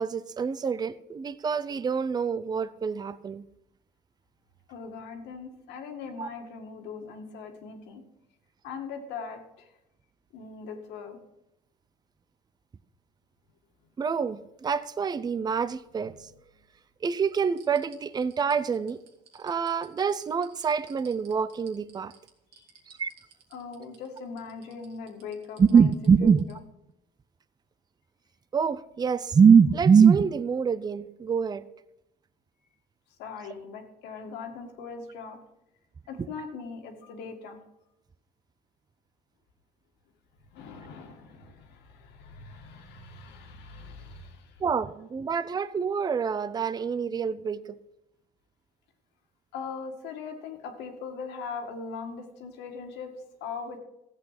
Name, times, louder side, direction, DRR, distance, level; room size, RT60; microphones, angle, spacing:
voice 1, 0.0-3.4 6.2-6.3 14.0-16.1 17.0-19.0 19.3-22.1 22.9-23.1 25.6-26.4 28.5-31.6 44.6-47.8, right 6 dB, 25° right, 16 dB, 0.5 m, -24 dB
voice 2, 4.7-8.0 8.6-9.7 10.3-11.2 22.5-22.7 23.5-26.6 33.2-35.4 36.1-37.6 40.5-44.6 49.5-53.8, left 5 dB, 90° left, 4 dB, 2.1 m, -40 dB
sound 1, 15.7-16.8 17.3-26.5 26.9-27.0, right 6 dB, 80° right, 2.4 m, -56 dB
14.0 x 8.2 x 5.8 m, 0.87 s
cardioid pair, 110°, 17 cm